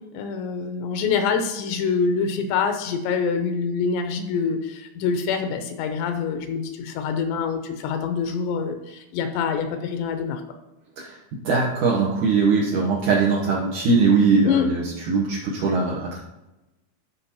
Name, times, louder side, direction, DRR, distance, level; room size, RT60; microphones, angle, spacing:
voice 1, 0.1-10.4 14.4-14.7, left 6 dB, 85° left, 7 dB, 2.8 m, -25 dB
voice 2, 11.4-14.8 15.1-16.2, right 4 dB, 85° right, -3 dB, 1.7 m, -20 dB
12.0 x 5.3 x 2.8 m, 0.95 s
omnidirectional pair, 5.0 m